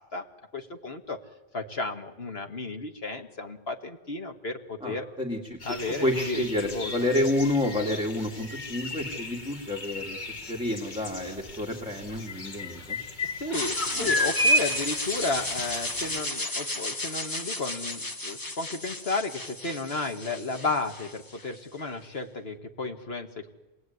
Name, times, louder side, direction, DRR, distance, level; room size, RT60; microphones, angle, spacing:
voice 1, 0.5-1.2 1.5-5.0 5.6-7.1 13.2-23.5, left 3 dB, 65° left, 5 dB, 2.3 m, -33 dB
voice 2, 4.8-5.6 5.9-13.0 14.0-14.1, left 1 dB, 5° right, 1 dB, 2.5 m, -29 dB
sound 1, 5.6-16.2, equal, 45° left, 1.6 m, -33 dB
sound 2, 13.5-21.6, left 2 dB, 20° left, 1.0 m, -34 dB
26.5 x 20.0 x 9.6 m, 1.1 s
omnidirectional pair, 1.1 m